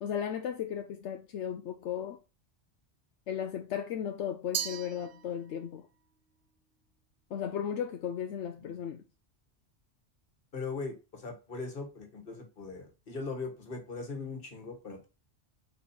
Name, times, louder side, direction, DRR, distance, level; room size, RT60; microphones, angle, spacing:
voice 1, 0.0-2.2 3.3-5.8 7.3-9.0, left 8 dB, 80° left, 0.9 m, -35 dB
Glass, 4.5-5.8, right 8 dB, 60° right, 0.8 m, -37 dB
voice 2, 10.5-15.1, left 4 dB, 50° left, 1.7 m, -40 dB
4.5 x 4.3 x 5.6 m
omnidirectional pair, 1.2 m